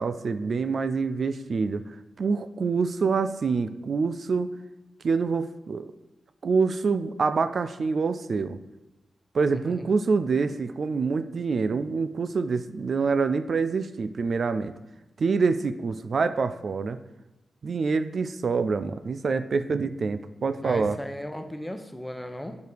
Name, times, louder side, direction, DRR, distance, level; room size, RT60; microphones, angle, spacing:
voice 1, 0.0-1.8 2.2-4.5 5.0-5.9 6.4-8.6 9.3-14.7 15.2-17.0 17.6-21.0, right 4 dB, 65° right, 12 dB, 0.3 m, -26 dB
voice 2, 9.5-9.9 20.6-22.6, equal, 10° left, 7 dB, 0.9 m, -37 dB
5.1 x 4.6 x 4.7 m, 0.99 s
supercardioid pair, 45°, 0 cm